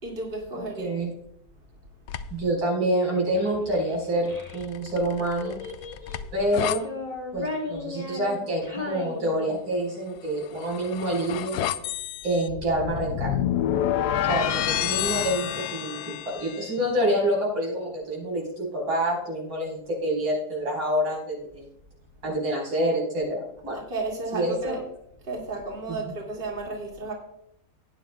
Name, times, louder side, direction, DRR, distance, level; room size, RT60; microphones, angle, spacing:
voice 1, 0.0-1.0 23.7-24.8 25.2-27.1, right 2 dB, 30° right, -2 dB, 2.5 m, -33 dB
voice 2, 0.8-1.1 2.3-5.6 6.3-6.9 7.3-11.6 12.2-13.3 14.3-16.0 16.3-21.6 22.2-23.8 24.3-24.8 25.9-26.1, right 1 dB, 90° right, -3 dB, 5.5 m, -27 dB
sound 1, 2.1-2.5 4.4-6.8 10.3-16.7, left 11 dB, 70° left, 1.0 m, -29 dB
Child speech kid speaking, 3.0-4.6 5.4-6.3 6.7-9.9, left 3 dB, 20° left, 1.8 m, -36 dB
18.0 x 9.7 x 2.3 m, 0.77 s
omnidirectional pair, 2.0 m